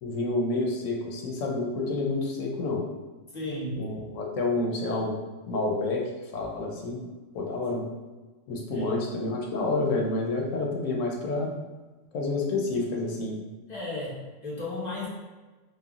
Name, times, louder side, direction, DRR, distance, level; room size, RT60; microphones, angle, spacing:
voice 1, 0.0-2.8 3.8-5.1 5.5-6.0 6.3-7.0 7.3-7.8 8.5-11.5 12.1-13.4, left 2 dB, 80° left, -1 dB, 1.0 m, -29 dB
voice 2, 3.3-3.9 8.7-9.1 13.7-15.1, left 1 dB, 35° left, -7 dB, 1.0 m, -34 dB
3.3 x 2.3 x 2.3 m, 1.3 s
omnidirectional pair, 1.3 m